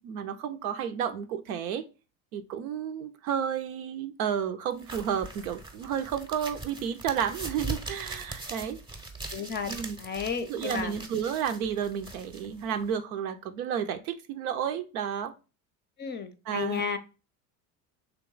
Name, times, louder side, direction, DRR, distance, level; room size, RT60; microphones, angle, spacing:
voice 1, 0.0-1.8 2.3-8.8 9.6-10.0 10.4-15.3 16.5-17.0, right 8 dB, 80° right, 9 dB, 0.6 m, -32 dB
sound 1, 4.8-12.9, right 2 dB, 10° right, 0.7 m, -41 dB
voice 2, 9.3-9.7 10.0-11.0 16.0-17.0, left 6 dB, 25° left, 9 dB, 0.5 m, -33 dB
3.4 x 2.9 x 3.8 m, 0.32 s
hypercardioid pair, 75°, 43 cm